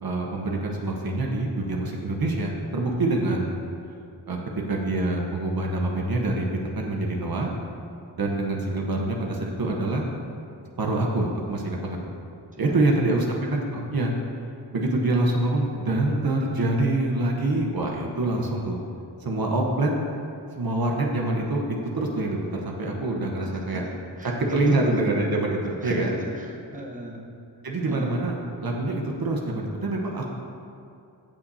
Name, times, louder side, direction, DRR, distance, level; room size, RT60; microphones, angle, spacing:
voice 1, 0.0-3.6 4.3-4.4 4.7-6.5 6.8-7.5 8.2-10.0 10.8-12.1 12.6-14.1 14.7-18.8 19.2-19.9 20.6-21.6 22.0-23.8 24.4-26.1 27.6-30.2, right 2 dB, 50° right, 0 dB, 1.1 m, -25 dB
voice 2, 12.5-13.2 23.4-25.2 25.8-27.2 27.8-28.2, right 1 dB, 20° right, -2 dB, 1.1 m, -37 dB
15.0 x 5.8 x 2.8 m, 2.6 s
wide cardioid pair, 90°, 45 cm